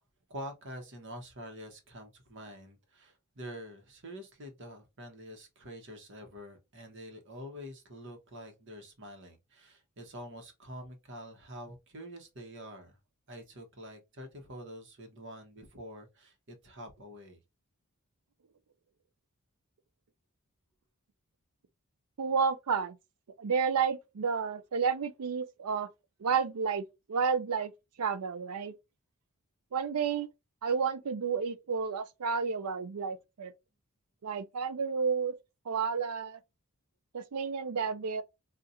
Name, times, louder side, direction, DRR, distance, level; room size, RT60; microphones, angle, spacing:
voice 1, 0.3-13.0 13.3-17.4, equal, 55° right, 1.0 m, -46 dB
voice 2, 22.2-23.0 23.4-25.9 26.2-27.7 28.0-28.7 29.7-30.3 30.6-33.5 34.2-35.4 35.7-36.4 37.1-38.2, right 6 dB, 80° right, 0.5 m, -31 dB
4.1 x 2.5 x 2.5 m
head